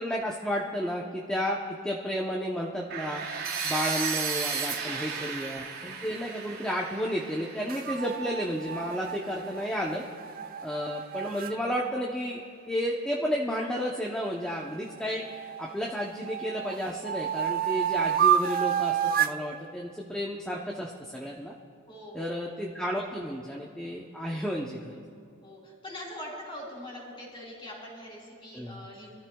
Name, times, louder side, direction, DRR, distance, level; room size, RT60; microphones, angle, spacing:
voice 1, 0.0-10.1 10.6-12.4 12.7-21.5 22.1-25.0 28.5-28.9, equal, 5° left, -3 dB, 0.7 m, -32 dB
sound 1, 2.9-8.8, right 5 dB, 60° right, 2.5 m, -34 dB
voice 2, 4.7-5.3 21.9-22.7 25.4-29.1, left 1 dB, 25° left, -3 dB, 3.5 m, -43 dB
sound 2, 7.7-11.5 14.5-15.7 16.2-19.4, right 9 dB, 40° right, 0.4 m, -30 dB
27.0 x 13.5 x 2.3 m, 2.4 s
head